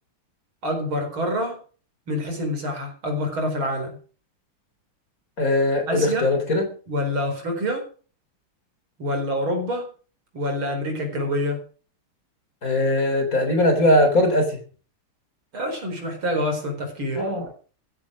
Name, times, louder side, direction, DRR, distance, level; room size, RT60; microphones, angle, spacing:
voice 1, 0.6-1.6 2.1-4.0 5.9-6.3 6.9-7.9 9.0-9.9 10.3-11.6 15.5-17.3, equal, 70° right, 4 dB, 5.3 m, -26 dB
voice 2, 5.4-6.7 12.6-14.6 17.2-17.5, left 1 dB, 40° left, 5 dB, 4.1 m, -20 dB
15.0 x 9.9 x 6.2 m, 0.40 s
omnidirectional pair, 2.4 m